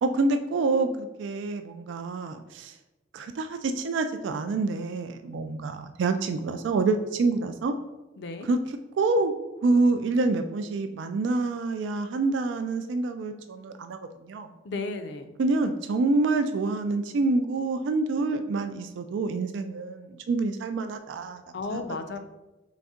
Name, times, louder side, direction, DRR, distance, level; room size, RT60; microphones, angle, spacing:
voice 1, 0.0-2.7 3.1-7.7 8.5-8.6 9.0-9.3 9.6-14.5 15.4-21.4 21.7-21.8, right 3 dB, 70° right, 8 dB, 0.3 m, -27 dB
voice 2, 8.2-8.5 14.6-15.3 21.5-22.2, left 3 dB, 60° left, 8 dB, 0.4 m, -33 dB
4.0 x 3.4 x 3.6 m, 1.0 s
head